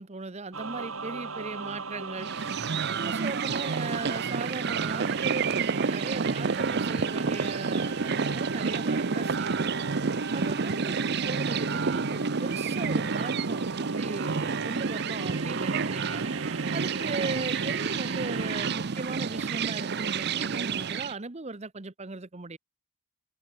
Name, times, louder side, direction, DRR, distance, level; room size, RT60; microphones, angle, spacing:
voice 1, 0.0-9.7 10.3-16.2 16.7-22.6, right 3 dB, 30° right, 0.9 m, -38 dB
sound 1, 0.5-18.7, right 3 dB, 80° right, 3.5 m, -37 dB
sound 2, 2.2-21.1, right 5 dB, 50° right, 0.6 m, -30 dB
head